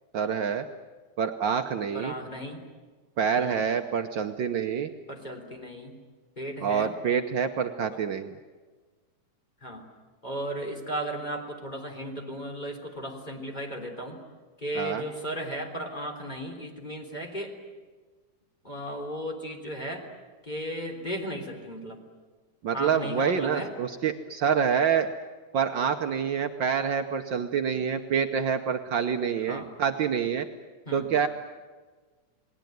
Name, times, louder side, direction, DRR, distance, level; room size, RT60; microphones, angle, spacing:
voice 1, 0.1-0.7 1.2-2.1 3.2-4.9 6.6-8.3 14.7-15.0 22.6-25.1 25.5-30.5 30.9-31.3, right 7 dB, 85° right, 6 dB, 1.0 m, -27 dB
voice 2, 1.9-2.6 3.4-3.7 5.1-5.9 6.4-6.9 9.6-9.9 10.2-14.2 14.6-17.5 18.6-20.1 20.4-22.0 22.7-23.7 29.5-29.7 30.9-31.1, equal, 15° left, 3 dB, 3.6 m, -35 dB
30.0 x 20.0 x 9.4 m, 1.4 s
omnidirectional pair, 3.5 m